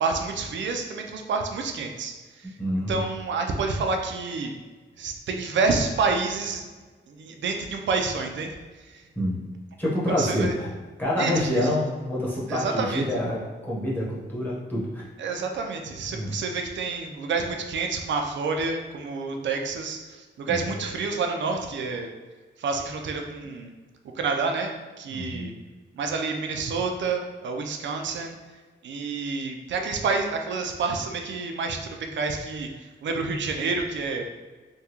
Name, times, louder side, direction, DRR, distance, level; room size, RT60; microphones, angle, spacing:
voice 1, 0.0-2.6 2.9-4.5 5.0-6.6 7.1-8.5 8.8-9.0 10.1-10.5 11.2-11.7 12.5-13.0 15.2-22.1 22.6-23.7 24.2-25.5 25.9-28.4 28.8-34.2, right 4 dB, 70° right, 3 dB, 0.5 m, -28 dB
voice 2, 2.6-3.1 9.1-9.4 9.8-10.7 11.0-15.0 16.1-16.4 20.5-20.7 25.1-25.6, left 1 dB, 10° left, -7 dB, 1.0 m, -27 dB
3.5 x 2.3 x 2.9 m, 1.3 s
wide cardioid pair, 140°, 20 cm